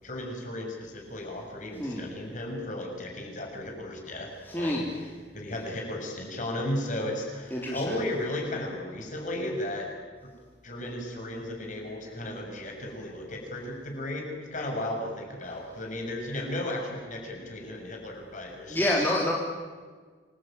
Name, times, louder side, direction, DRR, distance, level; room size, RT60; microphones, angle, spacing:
voice 1, 0.0-9.9 10.6-18.8, left 1 dB, 45° left, 1 dB, 6.7 m, -35 dB
voice 2, 4.5-4.9 7.5-8.0 18.7-19.3, left 1 dB, 10° left, -3 dB, 3.4 m, -27 dB
27.5 x 21.5 x 9.1 m, 1.5 s
head